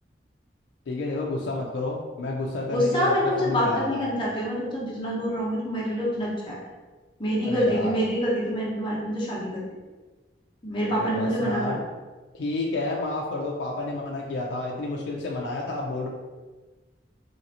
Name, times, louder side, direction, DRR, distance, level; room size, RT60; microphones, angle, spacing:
voice 1, 0.9-4.0 7.4-7.9 10.9-11.8 12.3-16.1, left 2 dB, 80° left, -2 dB, 0.4 m, -30 dB
voice 2, 2.7-6.6 7.2-9.6 10.6-11.8, equal, 30° left, -6 dB, 0.8 m, -26 dB
3.1 x 2.6 x 2.8 m, 1.3 s
head